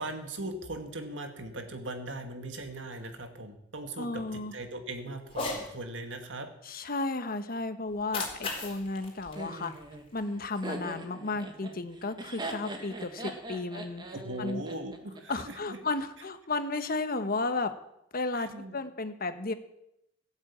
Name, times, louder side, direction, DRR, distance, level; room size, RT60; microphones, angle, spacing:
voice 1, 0.0-6.5 14.1-15.8 18.3-18.8, right 1 dB, 75° right, 6 dB, 2.2 m, -39 dB
voice 2, 4.0-4.5 6.6-9.7 10.1-14.6 15.3-17.7 18.1-19.5, left 3 dB, 50° left, 9 dB, 1.2 m, -33 dB
Cat, 5.2-5.7 7.9-10.2, left 3 dB, 30° left, 4.2 m, -38 dB
Laughter, 9.3-15.4, right 1 dB, 25° right, 1.9 m, -41 dB
17.0 x 8.1 x 8.7 m, 0.83 s
head